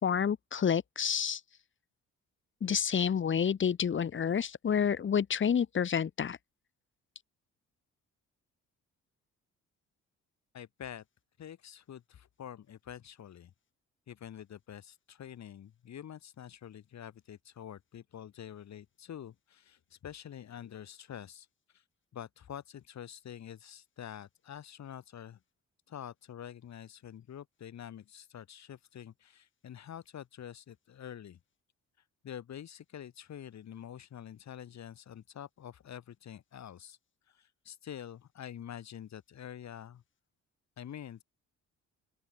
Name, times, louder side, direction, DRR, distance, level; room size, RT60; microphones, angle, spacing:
voice 1, 0.0-1.4 2.6-6.4, left 7 dB, 40° left, 1.3 m, -29 dB
voice 2, 10.5-11.0 11.4-13.5 14.1-21.5 21.7-21.8 22.1-25.4 25.9-31.4 32.2-37.0 37.3-40.0 40.8-41.2, left 9 dB, 65° left, 7.1 m, -47 dB
open air
cardioid pair, 90°, 30 cm